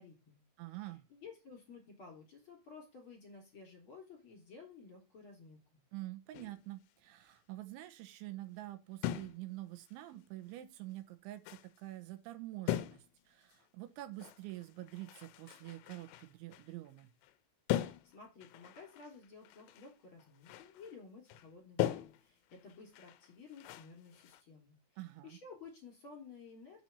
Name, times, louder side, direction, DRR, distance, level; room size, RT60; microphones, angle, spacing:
voice 1, 0.0-0.4 0.8-5.6 17.8-26.8, left 4 dB, 30° left, 3.8 m, -54 dB
voice 2, 0.6-1.1 5.9-17.1 25.0-25.4, right 16 dB, 90° right, 3.4 m, -47 dB
sound 1, 6.3-6.7 9.0-9.5 9.8-9.9 10.8-10.9 11.4-11.8 12.7-13.2 13.5-13.6 14.2-17.3 17.7-19.9 20.2-21.0 21.3-21.5 21.8-24.4, left 13 dB, 80° left, 2.8 m, -40 dB
7.4 x 6.0 x 6.9 m
omnidirectional pair, 5.4 m